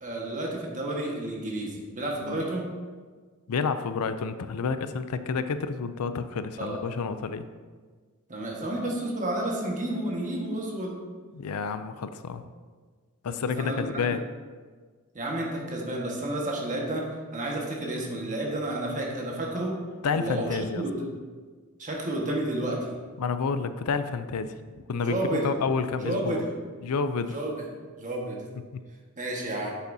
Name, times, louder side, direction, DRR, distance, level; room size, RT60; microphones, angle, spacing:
voice 1, 0.0-2.7 6.6-6.8 8.3-10.9 13.6-14.2 15.1-19.7 20.1-21.0 21.8-22.9 25.0-25.5 26.0-26.6 27.3-27.7 28.0-28.4 29.2-29.7, right 1 dB, 35° right, -2 dB, 1.5 m, -31 dB
voice 2, 3.5-7.5 11.3-12.5 13.2-14.2 20.0-20.8 23.2-24.6 24.9-26.4 26.8-27.4 28.7-28.8, left 5 dB, 80° left, 11 dB, 0.4 m, -29 dB
8.3 x 8.1 x 2.7 m, 1.5 s
head